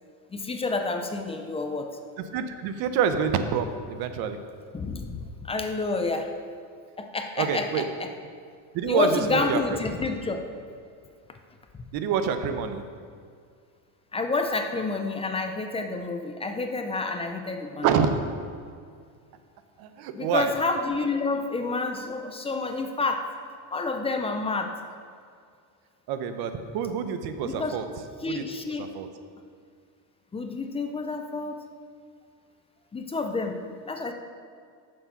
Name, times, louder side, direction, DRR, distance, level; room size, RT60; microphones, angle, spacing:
voice 1, 0.3-1.9 4.7-6.3 7.0-8.1 8.9-10.4 14.1-17.9 20.1-23.3 23.7-24.8 27.4-27.8 28.2-28.9 30.3-31.6 32.9-34.1, left 3 dB, 15° left, 5 dB, 0.4 m, -29 dB
voice 2, 2.3-4.4 7.4-7.8 8.7-9.6 11.9-12.8 17.8-18.2 19.8-20.5 26.1-27.8 28.3-28.4 28.8-29.1, right 7 dB, 55° right, 9 dB, 0.8 m, -27 dB
7.0 x 6.6 x 5.7 m, 2.2 s
cardioid pair, 125°, 44 cm